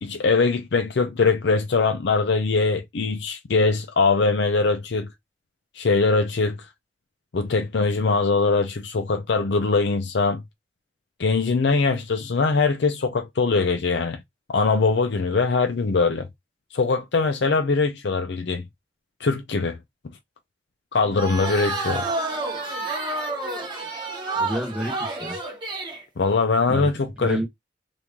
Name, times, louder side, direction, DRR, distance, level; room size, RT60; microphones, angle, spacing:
voice 1, 0.0-5.1 5.8-6.6 7.3-10.4 11.2-14.2 14.5-16.3 16.7-18.6 19.2-19.8 20.9-22.1 26.2-27.5, left 4 dB, 75° left, 0.5 m, -22 dB
sound 1, 21.2-26.0, right 2 dB, 25° right, 1.0 m, -29 dB
voice 2, 24.3-25.4 26.7-26.9 27.2-27.5, equal, 5° right, 1.1 m, -29 dB
3.0 x 2.6 x 3.6 m
head